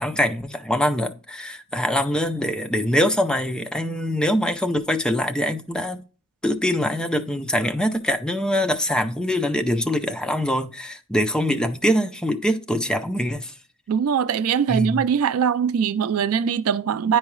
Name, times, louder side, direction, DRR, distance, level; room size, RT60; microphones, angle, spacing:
voice 1, 0.0-6.0 6.4-13.5 14.7-15.0, equal, 5° left, 0.4 m, -23 dB
voice 2, 13.9-17.2, right 7 dB, 70° right, 0.3 m, -21 dB
9.5 x 4.6 x 3.1 m
head